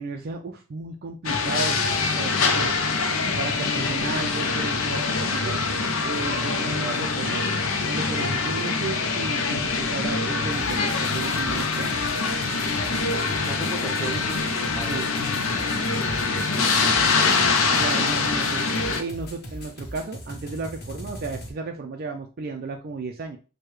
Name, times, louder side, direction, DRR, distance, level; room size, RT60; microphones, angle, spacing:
voice 1, 0.0-1.8 2.1-2.7 3.4-5.6 6.0-7.4 7.9-11.9 14.9-15.1 17.8-18.6 19.0-23.4, right 4 dB, 45° right, 4 dB, 0.4 m, -33 dB
sound 1, 1.2-19.0, left 4 dB, 65° left, 0.5 m, -24 dB
sound 2, 10.5-21.5, left 1 dB, 50° left, 1.1 m, -40 dB
voice 2, 13.4-15.0 15.3-15.7 16.0-17.3, right 1 dB, 5° left, 0 dB, 0.8 m, -37 dB
6.4 x 2.2 x 3.1 m, 0.34 s
head